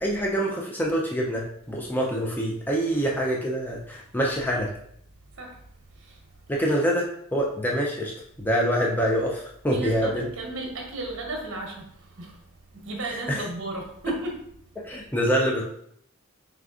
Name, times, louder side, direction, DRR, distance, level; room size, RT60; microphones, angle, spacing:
voice 1, 0.0-4.7 6.5-8.1 8.4-10.3 13.1-13.4 14.8-15.6, equal, 10° left, -2 dB, 0.4 m, -25 dB
voice 2, 9.7-11.9 12.2-12.4 12.8-14.4, right 2 dB, 60° right, 1 dB, 1.0 m, -34 dB
4.8 x 3.3 x 2.4 m, 0.67 s
head